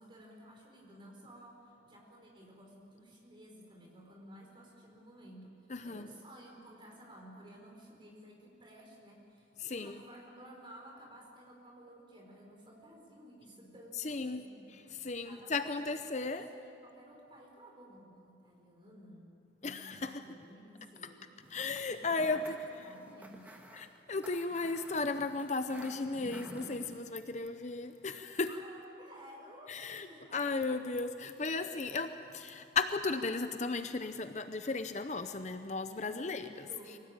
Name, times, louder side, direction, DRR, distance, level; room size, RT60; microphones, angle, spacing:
voice 1, 0.0-14.7 15.2-15.7 16.3-21.3 22.0-23.6 28.4-30.4 35.9-37.0, right 1 dB, 30° right, -1 dB, 4.5 m, -54 dB
voice 2, 5.7-6.1 9.6-10.0 14.0-14.4 15.0-16.5 19.6-20.1 21.5-22.6 23.7-28.5 29.7-30.1 30.3-36.5, left 3 dB, 40° left, 9 dB, 0.7 m, -35 dB
sound 1, 21.4-27.0, equal, 10° right, 1.7 m, -52 dB
23.5 x 18.0 x 8.9 m, 2.7 s
head